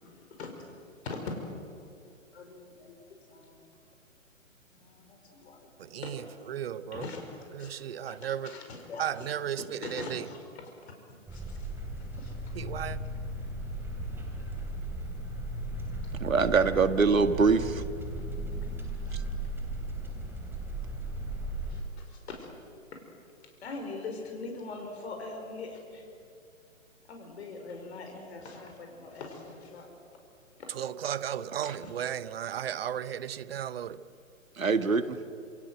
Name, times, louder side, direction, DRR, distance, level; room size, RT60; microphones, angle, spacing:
voice 1, 0.0-0.7 1.0-3.6 4.7-5.7 6.0-6.5 6.9-7.7 8.0-9.3 9.6-10.7 11.1-11.7 12.1-12.4 18.6-18.8 19.0-19.2 21.7-22.5 22.9-23.0 23.6-26.1 27.1-29.9 30.6-30.7 31.8-32.2 32.5-32.6, left 3 dB, 50° left, 5.2 m, -43 dB
voice 2, 6.5-7.0 7.6-8.5 9.0-10.2 12.6-13.0 30.8-34.0, right 10 dB, 45° right, 1.0 m, -34 dB
sound 1, 11.3-21.8, right 1 dB, 5° right, 3.2 m, -36 dB
voice 3, 16.2-17.8 31.6-31.8 34.6-35.2, right 4 dB, 75° right, 1.8 m, -24 dB
27.0 x 27.0 x 7.9 m
figure-of-eight pair, 130°, 41 cm